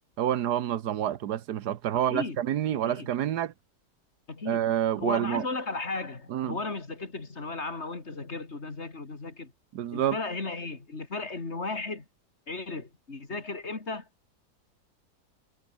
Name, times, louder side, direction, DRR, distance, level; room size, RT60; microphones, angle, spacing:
voice 1, 0.2-3.5 4.5-5.4 6.3-6.6 9.7-10.2, right 11 dB, 80° right, 1.5 m, -28 dB
voice 2, 4.3-4.7 5.0-9.5 9.9-12.0 12.5-14.1, left 3 dB, 40° left, 2.9 m, -35 dB
omnidirectional pair, 1.7 m